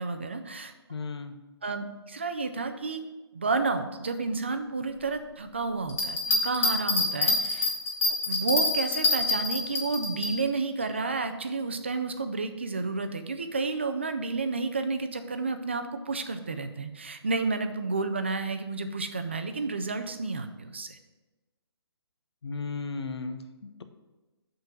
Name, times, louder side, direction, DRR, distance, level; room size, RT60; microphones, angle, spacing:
voice 1, 0.0-0.7 1.6-3.0 3.3-7.7 8.3-21.0, right 3 dB, 25° right, 8 dB, 0.4 m, -31 dB
voice 2, 0.9-1.3 22.4-23.8, left 4 dB, 70° left, 8 dB, 0.8 m, -35 dB
Bell, 5.9-10.3 10.8-10.9, left 2 dB, 30° left, 1.1 m, -26 dB
8.0 x 3.8 x 5.9 m, 1.2 s
hypercardioid pair, 175°, 14 cm